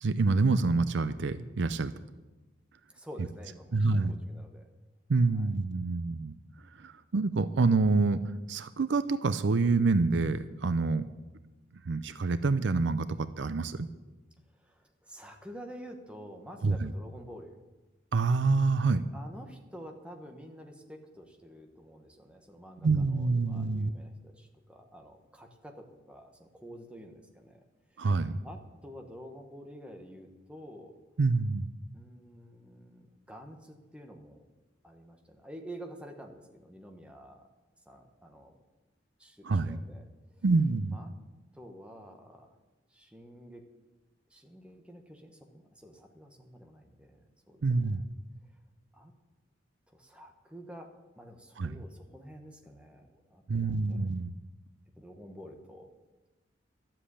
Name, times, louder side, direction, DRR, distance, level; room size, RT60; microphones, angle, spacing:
voice 1, 0.0-1.9 3.7-4.1 5.1-6.3 6.8-8.2 8.5-11.0 11.9-13.1 13.4-13.9 16.6-16.9 18.1-19.0 22.8-23.9 28.0-28.4 31.2-31.7 39.4-39.8 40.4-41.0 47.6-48.0 51.6-51.8 53.5-54.3, right 3 dB, 65° right, 13 dB, 0.5 m, -27 dB
voice 2, 2.9-4.7 5.3-5.5 14.5-17.6 19.1-27.6 27.9-28.1 28.4-31.0 31.9-34.4 34.8-37.5 37.8-38.5 39.2-40.1 40.9-41.1 41.5-42.6 42.9-43.6 44.3-47.9 48.9-49.1 49.9-50.9 51.2-54.1 54.9-55.9, equal, 5° right, 2 dB, 1.3 m, -49 dB
12.5 x 7.7 x 8.4 m, 1.1 s
head